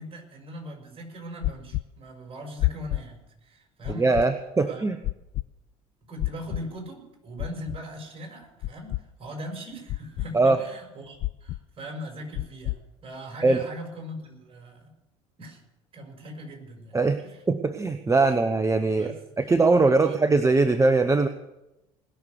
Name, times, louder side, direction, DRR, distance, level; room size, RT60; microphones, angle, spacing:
voice 1, 0.0-4.1 4.6-4.8 6.1-14.9 15.4-15.6 15.9-17.4 18.9-19.2 20.0-20.2, equal, 35° right, 2 dB, 6.1 m, -40 dB
sound 1, 1.4-1.8 2.6-3.0 3.8-4.2 5.0-5.4 6.2-6.6 7.4-7.8 8.6-9.0 9.9-10.3 11.2-11.6 12.4-12.8, left 18 dB, 55° left, 0.5 m, -28 dB
voice 2, 4.0-5.0 10.3-10.6 13.4-13.6 16.9-17.2 17.5-21.3, right 3 dB, 20° right, 9 dB, 1.0 m, -21 dB
20.0 x 6.9 x 8.0 m, 0.93 s
hypercardioid pair, 75°, 16 cm